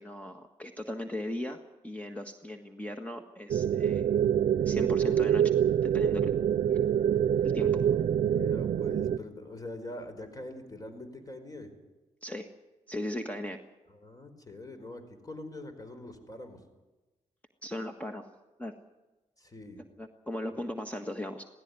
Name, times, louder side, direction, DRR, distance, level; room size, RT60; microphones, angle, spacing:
voice 1, 0.0-4.1 4.6-5.5 5.8-6.5 7.4-7.8 12.2-12.5 12.9-13.6 17.6-18.3 18.6-18.7 20.0-21.5, left 1 dB, 10° left, 6 dB, 1.6 m, -38 dB
sound 1, 3.5-9.2, right 9 dB, 70° right, 0.6 m, -26 dB
voice 2, 8.4-11.7 13.9-16.6 19.4-19.8, left 2 dB, 30° left, 8 dB, 4.7 m, -43 dB
17.5 x 16.0 x 9.6 m, 1.1 s
cardioid pair, 75°, 13 cm